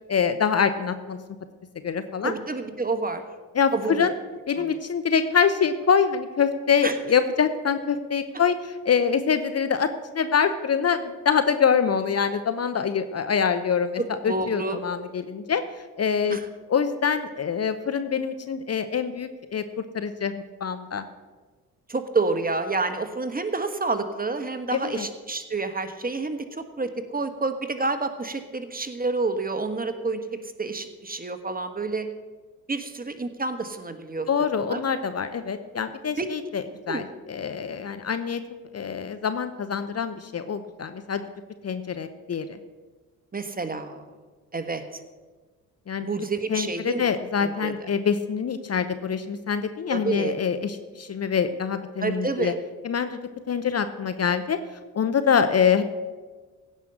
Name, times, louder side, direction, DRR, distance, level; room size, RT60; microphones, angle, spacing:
voice 1, 0.1-1.2 1.8-2.3 3.5-4.1 4.5-15.6 16.0-16.4 16.7-19.6 19.9-20.3 20.6-21.0 24.7-25.1 34.3-38.4 38.7-41.2 41.6-42.6 45.9-46.1 46.5-52.5 52.8-53.2 53.5-54.6 54.9-55.8, left 6 dB, 35° left, 10 dB, 0.9 m, -25 dB
voice 2, 2.2-3.2 3.7-4.1 4.6-4.8 6.8-7.0 14.0-14.8 16.3-16.5 21.9-30.2 30.6-32.1 32.7-34.8 36.2-36.3 36.9-37.0 43.3-44.0 44.5-44.8 46.0-47.0 47.4-47.7 49.9-50.4 52.0-52.5, right 3 dB, 20° right, 8 dB, 1.4 m, -29 dB
16.0 x 5.6 x 7.8 m, 1.3 s
hypercardioid pair, 45°, 43 cm